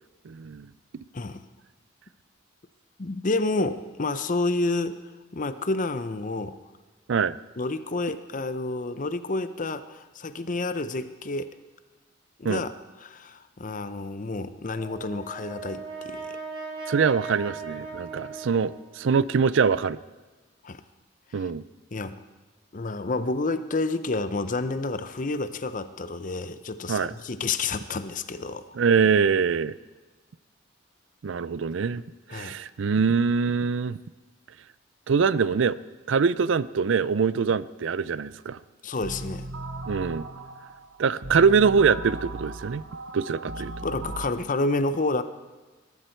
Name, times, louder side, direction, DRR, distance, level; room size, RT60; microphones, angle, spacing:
voice 1, 0.2-0.7 7.1-7.4 12.4-12.6 16.9-20.0 21.3-21.6 26.9-27.1 28.8-29.7 31.2-32.0 32.3-34.0 35.1-35.8 36.1-38.6 39.9-40.3 41.0-42.8 43.1-43.7, right 5 dB, 65° right, 18 dB, 0.4 m, -23 dB
voice 2, 3.0-5.0 5.3-6.6 7.6-11.5 12.4-12.7 13.0-16.4 20.6-20.8 21.9-22.2 22.7-28.7 32.3-32.6 38.8-39.5 43.8-45.2, left 2 dB, 40° left, 12 dB, 0.7 m, -29 dB
Brass instrument, 14.7-19.1, right 4 dB, 25° right, 3.2 m, -38 dB
west dreaming, 39.0-44.3, right 2 dB, 85° right, 1.3 m, -37 dB
21.0 x 12.0 x 4.5 m, 1.3 s
head